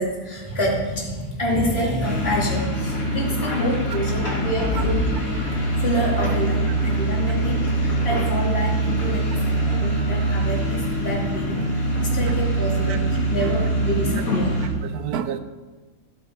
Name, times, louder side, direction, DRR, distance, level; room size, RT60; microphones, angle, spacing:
voice 1, 0.0-5.1 5.8-13.0 13.3-14.5, equal, 40° left, -3 dB, 2.9 m, -27 dB
sound 1, 2.0-14.7, right 1 dB, 65° left, 3.2 m, -23 dB
voice 2, 12.9-13.5 14.8-15.4, right 8 dB, 80° right, 11 dB, 1.2 m, -30 dB
14.5 x 8.7 x 4.6 m, 1.3 s
omnidirectional pair, 1.6 m